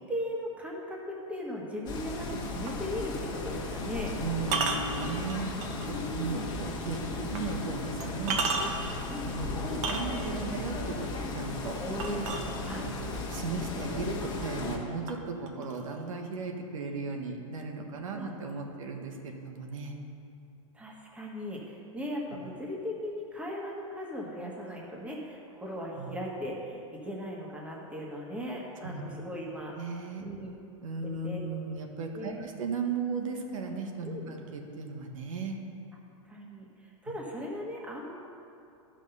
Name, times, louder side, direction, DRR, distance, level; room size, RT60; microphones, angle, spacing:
voice 1, 0.1-4.1 5.9-6.5 9.1-9.3 11.8-12.9 15.5-15.6 18.1-18.3 20.7-29.7 30.2-30.5 31.2-31.4 32.1-32.4 34.0-34.3 36.2-38.1, equal, 5° right, -2 dB, 1.5 m, -38 dB
sound 1, 1.9-14.8, left 3 dB, 25° left, 1.5 m, -36 dB
sound 2, 2.7-2.8 4.4-5.9 6.4-6.5 7.3-7.4 8.0-9.0 9.7-10.5 12.0-12.9 13.9-14.0 14.4-14.8 15.1-16.0, right 4 dB, 40° right, 1.2 m, -32 dB
voice 2, 4.2-5.5 5.9-7.0 7.3-8.4 8.7-8.8 9.2-11.8 12.5-19.9 26.0-26.1 28.8-29.0 29.8-30.2 30.8-35.6, right 4 dB, 75° right, 3 dB, 1.4 m, -36 dB
11.5 x 6.0 x 5.6 m, 2.6 s
hypercardioid pair, 135°, 17 cm